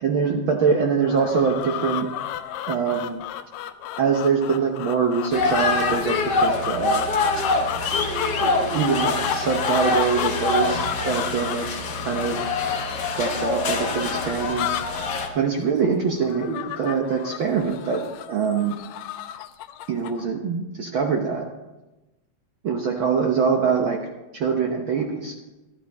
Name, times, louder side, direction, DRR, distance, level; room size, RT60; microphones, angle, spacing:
voice 1, 0.0-2.1 2.7-3.2 4.0-7.0 8.4-11.7 12.0-12.4 13.2-14.8 15.3-18.0 18.3-18.7 19.9-21.5 22.6-24.0 24.3-25.3, right 6 dB, 70° right, 2 dB, 1.2 m, -24 dB
sound 1, 1.0-20.3, left 12 dB, 80° left, 1.8 m, -33 dB
sound 2, 5.3-15.3, left 3 dB, 60° left, 1.1 m, -25 dB
12.0 x 12.0 x 4.1 m, 1.1 s
omnidirectional pair, 3.4 m